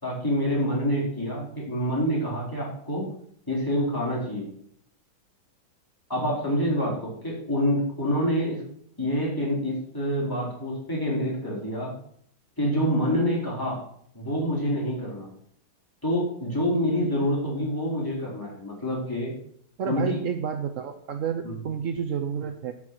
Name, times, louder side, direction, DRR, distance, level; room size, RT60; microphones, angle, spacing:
voice 1, 0.0-3.1 3.5-4.5 6.1-8.6 9.0-11.9 12.6-13.8 14.1-15.3 16.0-19.3 19.9-20.2 21.4-21.6, equal, 10° left, -6 dB, 4.1 m, -27 dB
voice 2, 19.8-22.7, right 7 dB, 65° right, 6 dB, 0.7 m, -30 dB
9.5 x 5.7 x 7.6 m, 0.66 s
omnidirectional pair, 2.2 m